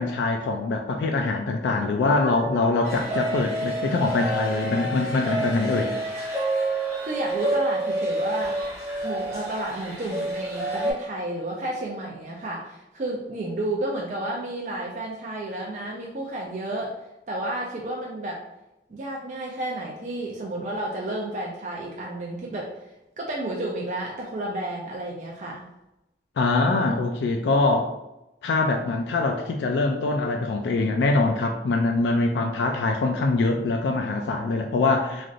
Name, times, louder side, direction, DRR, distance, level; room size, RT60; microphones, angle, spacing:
voice 1, 0.0-5.9 26.4-27.9 28.4-35.3, left 3 dB, 80° left, 3 dB, 0.3 m, -23 dB
voice 2, 2.2-2.5 7.0-8.6 9.0-17.0 17.3-18.4 18.9-22.8 23.2-25.7, right 1 dB, 45° right, -2 dB, 0.4 m, -31 dB
sound 1, 2.8-10.9, right 1 dB, 15° right, 0.8 m, -28 dB
3.2 x 2.5 x 2.4 m, 0.91 s
head